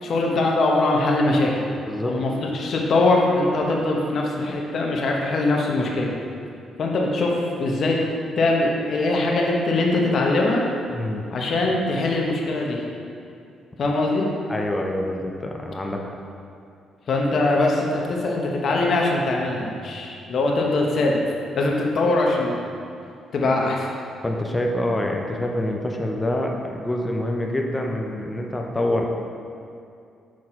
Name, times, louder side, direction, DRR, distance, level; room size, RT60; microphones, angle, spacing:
voice 1, 0.0-1.7 2.1-6.1 6.8-8.0 8.4-10.6 11.3-12.8 13.8-14.3 17.1-21.2 21.5-22.6 23.3-23.9, left 2 dB, 55° left, -1 dB, 1.0 m, -22 dB
voice 2, 10.9-11.2 14.5-16.0 24.2-29.1, left 1 dB, 15° left, 1 dB, 0.6 m, -26 dB
6.2 x 4.3 x 4.3 m, 2.5 s
cardioid pair, 90°, 0 cm